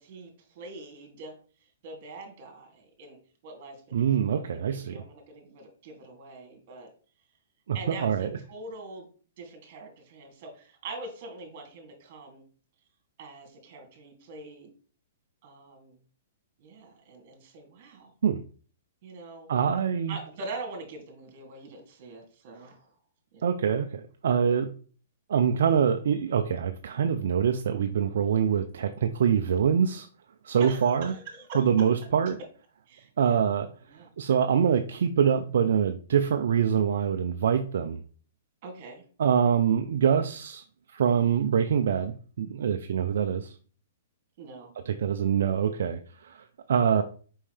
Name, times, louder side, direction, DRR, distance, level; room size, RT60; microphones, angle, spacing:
voice 1, 0.0-1.3 1.8-3.2 3.4-6.9 7.7-9.1 9.4-12.4 13.2-14.7 15.4-16.0 16.6-18.1 19.0-19.5 20.1-22.9 23.3-23.4 30.6-31.9 32.9-33.5 33.8-34.1 38.6-39.0 44.4-44.7, right 3 dB, 45° right, 2 dB, 2.7 m, -43 dB
voice 2, 3.9-5.0 7.7-8.4 18.2-18.4 19.5-20.2 23.4-24.7 25.3-30.1 30.4-31.1 31.5-32.4 33.2-33.7 34.2-38.0 39.2-40.6 40.9-43.5 44.9-47.0, right 7 dB, 70° right, 7 dB, 0.5 m, -25 dB
5.5 x 5.3 x 3.3 m, 0.41 s
hypercardioid pair, 145°, 0 cm